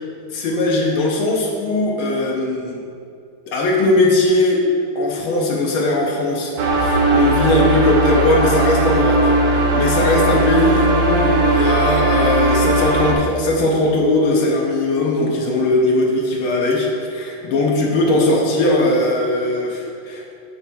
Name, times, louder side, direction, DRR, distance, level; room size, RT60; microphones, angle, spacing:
voice 1, 0.3-2.8 3.5-4.6 4.9-20.3, left 2 dB, 75° left, -1 dB, 1.6 m, -19 dB
sound 1, 6.6-13.1, right 2 dB, 75° right, 1.6 m, -17 dB
5.9 x 4.1 x 5.4 m, 2.5 s
omnidirectional pair, 2.4 m